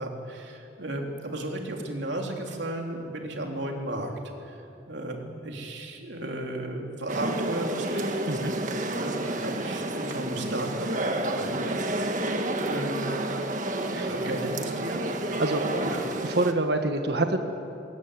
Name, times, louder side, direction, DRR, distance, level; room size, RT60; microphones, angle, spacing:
voice 1, 0.0-4.1 4.4-4.6 4.9-8.2 8.9-10.9 11.2-11.8 12.6-13.1 13.9-15.2 15.8-16.1, right 1 dB, 80° right, 1 dB, 3.3 m, -34 dB
sound 1, 7.1-16.5, right 1 dB, 45° right, 1.6 m, -30 dB
voice 2, 15.4-15.7 16.2-17.4, right 2 dB, 65° right, 6 dB, 1.6 m, -26 dB
21.5 x 18.5 x 9.7 m, 2.8 s
head